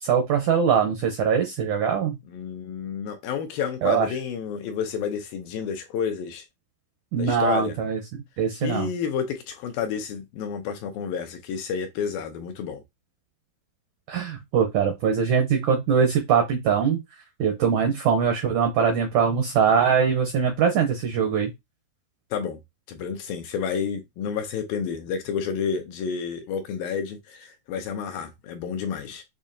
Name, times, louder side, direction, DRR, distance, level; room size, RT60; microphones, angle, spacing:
voice 1, 0.0-2.1 3.8-4.1 7.1-8.0 8.4-8.9 14.1-17.0 17.4-21.5, right 7 dB, 80° right, 1.7 m, -22 dB
voice 2, 2.3-6.4 7.2-7.8 8.6-12.8 22.3-22.6 22.9-29.2, left 7 dB, 75° left, 2.3 m, -30 dB
7.2 x 2.7 x 2.7 m
omnidirectional pair, 4.5 m